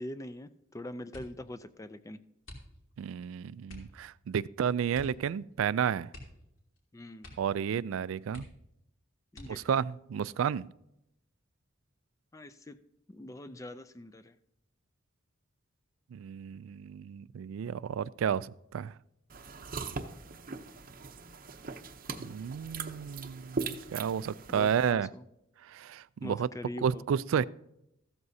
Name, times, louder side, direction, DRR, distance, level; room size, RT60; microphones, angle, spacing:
voice 1, 0.0-2.2 6.9-7.4 9.3-9.8 12.3-12.8 13.1-14.4 24.5-25.2 26.2-27.0, left 1 dB, 15° left, 0.3 m, -43 dB
sound 1, 1.1-1.5 2.4-3.1 3.6-4.0 4.9-5.3 5.5-5.6 6.1-6.8 7.2-7.6 7.9-8.0 8.3-8.8 9.3-9.8 10.6-11.2 11.6-11.9, left 1 dB, 75° left, 2.9 m, -49 dB
voice 2, 3.0-6.1 7.4-8.5 9.5-10.7 16.1-18.9 22.2-25.1 25.7-26.5 26.8-27.4, right 7 dB, 75° right, 0.3 m, -31 dB
sound 2, 19.3-24.9, right 4 dB, 45° right, 0.7 m, -40 dB
14.5 x 12.5 x 2.7 m
head